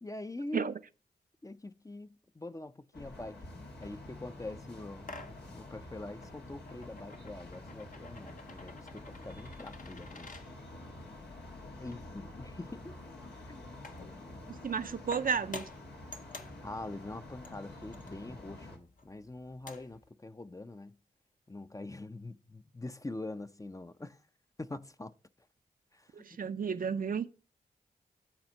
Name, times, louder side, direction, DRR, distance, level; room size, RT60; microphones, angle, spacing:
voice 1, 0.0-0.8 1.4-3.4 3.8-10.3 11.8-13.0 13.5-13.7 16.6-21.0 21.5-24.2 24.6-25.2 25.9-26.4, left 2 dB, 20° left, 0.5 m, -44 dB
sound 1, 2.9-18.8, left 1 dB, 90° left, 1.7 m, -48 dB
sound 2, 3.4-20.1, left 2 dB, 55° left, 0.9 m, -53 dB
voice 2, 14.5-15.7 26.1-27.3, right 6 dB, 55° right, 0.5 m, -33 dB
8.8 x 4.2 x 6.3 m
cardioid pair, 45°, 17 cm